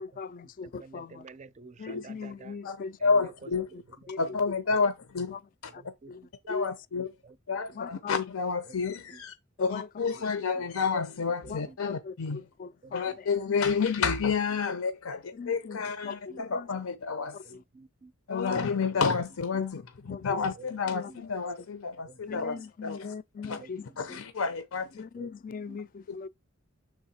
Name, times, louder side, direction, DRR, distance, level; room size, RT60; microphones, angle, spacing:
voice 1, 0.0-1.2 1.8-2.9 4.1-4.2 5.7-5.8 6.1-6.7 7.7-8.2 9.6-9.9 11.4-13.1 13.5-13.6 15.3-16.7 17.3-17.6 18.3-18.7 19.6-19.7 20.1-20.4 20.9-21.1 22.3-24.2 25.0-26.3, left 5 dB, 40° left, 0.3 m, -40 dB
voice 2, 0.8-2.5 3.0-3.1 6.0-6.1 12.8-12.9 16.0-16.4 17.5-18.1 22.0-22.4 23.6-23.7 24.1-24.2 25.2-25.3 25.7-25.8, right 4 dB, 35° right, 0.4 m, -50 dB
voice 3, 2.6-3.7 4.2-5.4 5.6-5.7 6.5-7.1 7.5-12.4 12.9-17.4 18.3-23.1 23.4-23.6 24.0-25.0 26.1-26.2, left 5 dB, 85° left, 0.6 m, -30 dB
6.3 x 3.7 x 4.2 m
head